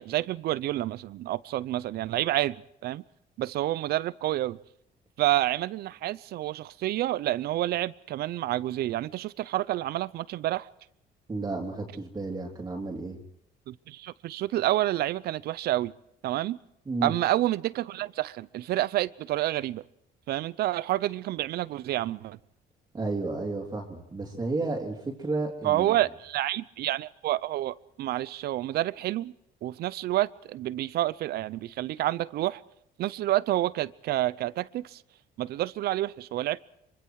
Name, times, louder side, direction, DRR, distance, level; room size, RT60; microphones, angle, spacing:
voice 1, 0.0-3.0 3.4-4.6 5.2-10.7 13.7-15.9 16.2-16.6 17.0-19.8 20.3-22.4 25.6-29.3 29.6-32.6 33.0-35.0 35.4-36.6, right 15 dB, 70° right, 0.7 m, -29 dB
voice 2, 11.3-13.2 16.8-17.1 22.9-26.0, right 3 dB, 25° right, 3.2 m, -32 dB
25.0 x 24.0 x 4.8 m
cardioid pair, 110°, 17 cm